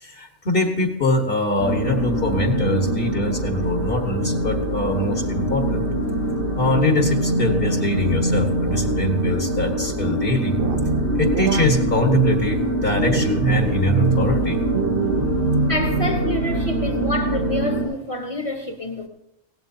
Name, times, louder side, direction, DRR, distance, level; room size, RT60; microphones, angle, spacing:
voice 1, 0.0-5.8 6.6-10.5 11.2-14.6, left 2 dB, 55° left, 1.6 m, -23 dB
sound 1, 1.6-17.8, right 1 dB, 85° left, 6.5 m, -24 dB
sound 2, 10.6-12.6 13.0-14.3 14.7-16.3, right 5 dB, 55° right, 1.0 m, -24 dB
voice 2, 15.7-19.1, left 1 dB, 30° left, 1.2 m, -28 dB
19.5 x 16.5 x 2.8 m
omnidirectional pair, 1.2 m